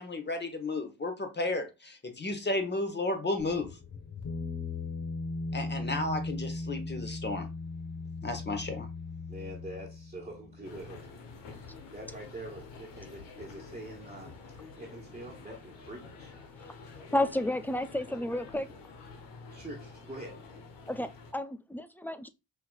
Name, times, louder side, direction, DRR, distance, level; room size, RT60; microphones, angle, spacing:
voice 1, 0.0-3.7 5.5-7.5 8.2-8.9, left 2 dB, 25° left, 1.2 m, -33 dB
sound 1, 3.4-10.8, left 3 dB, 45° left, 1.2 m, -38 dB
voice 2, 9.3-11.6 11.9-16.3 18.1-18.2 19.5-20.4, right 1 dB, 15° right, 1.4 m, -45 dB
sound 2, 10.6-21.3, left 4 dB, 65° left, 1.1 m, -48 dB
voice 3, 17.1-18.7 20.9-22.3, left 1 dB, 5° left, 0.3 m, -31 dB
5.7 x 3.0 x 2.3 m
hypercardioid pair, 45°, 45 cm